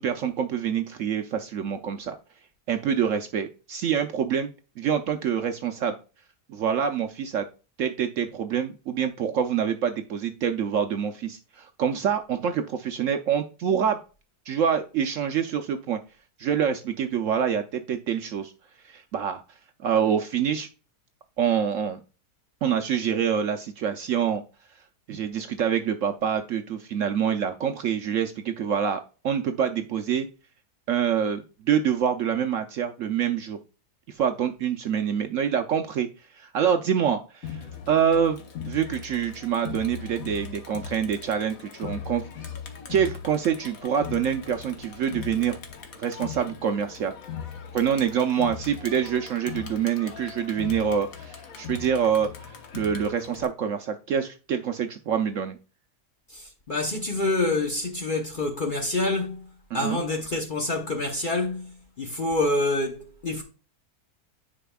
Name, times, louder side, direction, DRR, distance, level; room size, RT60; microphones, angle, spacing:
voice 1, 0.0-2.2 2.7-5.9 6.5-7.5 7.8-14.0 14.5-16.0 16.4-18.5 18.8-19.4 19.8-20.7 21.4-22.0 22.6-24.4 25.1-30.3 30.9-33.6 34.1-36.1 36.3-37.6 37.9-42.3 42.9-45.6 46.0-47.1 47.7-52.3 52.7-55.6 59.7-60.0, right 8 dB, 65° right, 0.8 m, -26 dB
Crowd, 37.4-53.4, left 7 dB, 60° left, 1.5 m, -39 dB
voice 2, 56.3-63.4, left 2 dB, 40° left, 0.8 m, -27 dB
10.0 x 5.0 x 2.3 m
omnidirectional pair, 1.7 m